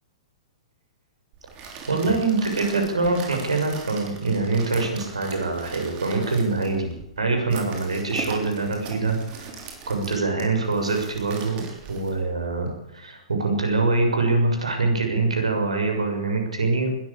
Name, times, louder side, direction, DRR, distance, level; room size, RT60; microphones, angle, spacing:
sound 1, 1.3-12.7, right 5 dB, 35° right, 6.2 m, -40 dB
voice 1, 1.9-9.5 9.9-11.6 11.9-16.9, right 3 dB, 80° right, 3 dB, 6.8 m, -24 dB
21.0 x 14.0 x 8.8 m, 0.82 s
figure-of-eight pair, 115°, 3 cm